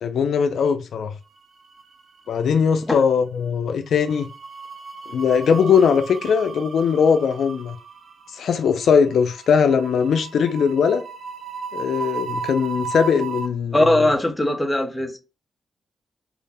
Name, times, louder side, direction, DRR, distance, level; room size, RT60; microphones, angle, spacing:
voice 1, 0.0-1.1 2.3-4.3 5.1-7.8 8.3-11.0 11.7-14.1, left 6 dB, 75° left, 0.3 m, -20 dB
sound 1, 1.4-2.2 2.5-2.7 3.9-13.5, right 5 dB, 55° right, 0.4 m, -35 dB
voice 2, 13.7-15.2, left 1 dB, 10° left, 0.5 m, -20 dB
2.4 x 2.1 x 3.3 m
wide cardioid pair, 120°, 0 cm